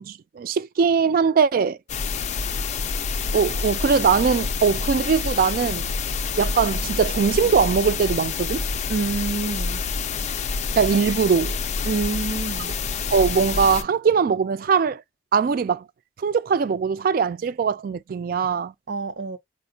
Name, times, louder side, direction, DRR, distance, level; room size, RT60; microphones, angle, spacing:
voice 1, 0.0-1.8 3.3-5.9 6.4-8.6 10.8-11.6 13.1-15.0 15.3-15.8 16.2-18.7, right 6 dB, 55° right, 0.3 m, -21 dB
sound 1, 1.9-13.8, left 5 dB, 40° left, 0.3 m, -27 dB
voice 2, 8.9-9.8 11.8-12.7 18.9-19.4, right 4 dB, 90° right, 0.7 m, -27 dB
4.4 x 2.0 x 2.6 m
head